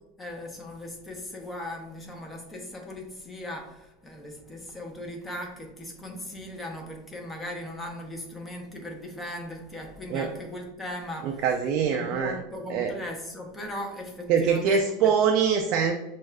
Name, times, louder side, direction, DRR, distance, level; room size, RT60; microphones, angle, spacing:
voice 1, 0.2-11.4 11.9-15.1, left 1 dB, 15° left, 1 dB, 0.9 m, -38 dB
voice 2, 11.2-12.4 12.7-12.9 14.3-15.9, right 6 dB, 50° right, 4 dB, 0.4 m, -23 dB
6.0 x 2.4 x 2.3 m, 0.96 s
supercardioid pair, 130°, 0 cm